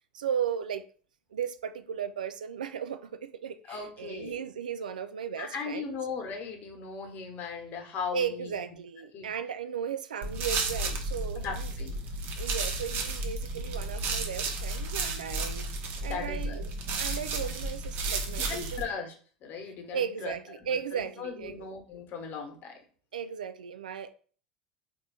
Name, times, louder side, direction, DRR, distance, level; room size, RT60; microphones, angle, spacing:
voice 1, 0.1-0.8 1.3-6.0 8.1-11.7 12.4-15.7 16.0-16.7 17.0-18.9 19.9-21.7 23.1-24.1, right 8 dB, 80° right, 0.3 m, -36 dB
voice 2, 3.7-4.4 5.4-8.6 9.1-9.3 11.4-12.0 16.0-16.6 18.4-19.1 19.4-20.3 20.6-22.8, left 5 dB, 45° left, 1.1 m, -38 dB
sound 1, 10.2-18.8, right 3 dB, 50° right, 0.8 m, -33 dB
3.9 x 2.6 x 3.3 m
hypercardioid pair, 75°, 4 cm